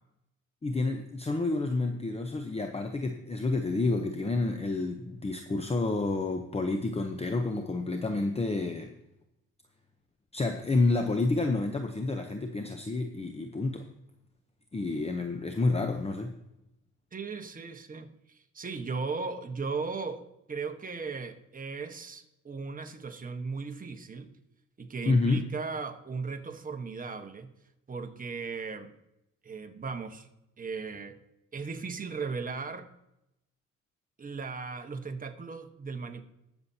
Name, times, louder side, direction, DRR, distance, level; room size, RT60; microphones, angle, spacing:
voice 1, 0.6-8.9 10.3-13.9 14.7-16.3 25.1-25.4, left 3 dB, 20° left, 5 dB, 0.8 m, -29 dB
voice 2, 17.1-24.3 24.8-27.5 27.9-29.0 29.4-30.3 30.6-31.2 31.5-32.9 34.2-36.2, right 4 dB, 30° right, 6 dB, 1.3 m, -37 dB
20.5 x 6.9 x 2.8 m, 0.87 s
cardioid pair, 90°, 30 cm